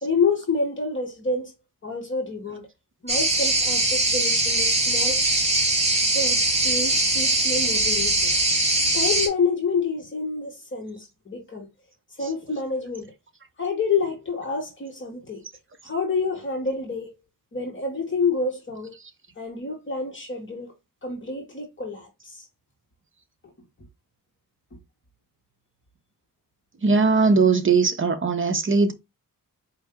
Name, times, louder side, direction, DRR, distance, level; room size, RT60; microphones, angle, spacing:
voice 1, 0.0-1.5 1.8-2.7 3.0-5.2 6.1-8.3 8.9-11.7 12.2-13.1 13.6-15.4 15.8-17.1 17.5-18.9 19.4-20.7 21.0-22.5, left 4 dB, 35° left, 1.2 m, -28 dB
sound 1, 3.1-9.3, right 2 dB, 20° right, 1.3 m, -21 dB
voice 2, 26.8-28.9, right 4 dB, 35° right, 0.6 m, -20 dB
4.5 x 2.6 x 3.5 m
wide cardioid pair, 155°, 35 cm